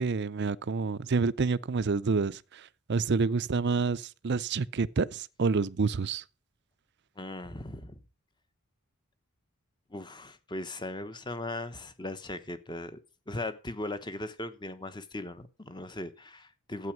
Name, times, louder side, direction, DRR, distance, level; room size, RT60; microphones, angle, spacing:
voice 1, 0.0-6.2, right 4 dB, 50° right, 0.5 m, -28 dB
voice 2, 7.2-8.0 9.9-13.0 13.3-16.9, left 2 dB, 20° left, 1.0 m, -38 dB
12.5 x 8.7 x 6.1 m
head